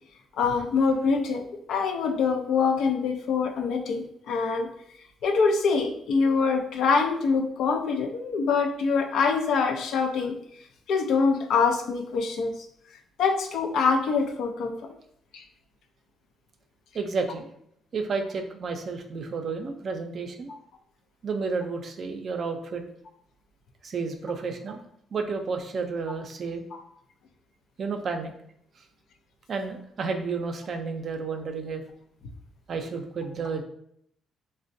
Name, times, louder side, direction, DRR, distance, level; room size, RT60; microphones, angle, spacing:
voice 1, 0.4-1.4 1.7-4.7 5.2-10.4 10.9-12.5 13.2-14.7 15.3-15.4 20.5-20.6 26.7-26.8, left 5 dB, 75° left, 4 dB, 0.4 m, -24 dB
voice 2, 16.9-17.5 17.9-20.5 21.2-22.8 23.8-24.8 25.1-26.6 27.8-28.3 28.8-28.9 29.5-31.8 32.7-33.6, right 4 dB, 55° right, 5 dB, 0.4 m, -31 dB
4.2 x 2.1 x 2.6 m, 0.71 s
cardioid pair, 90°, 0 cm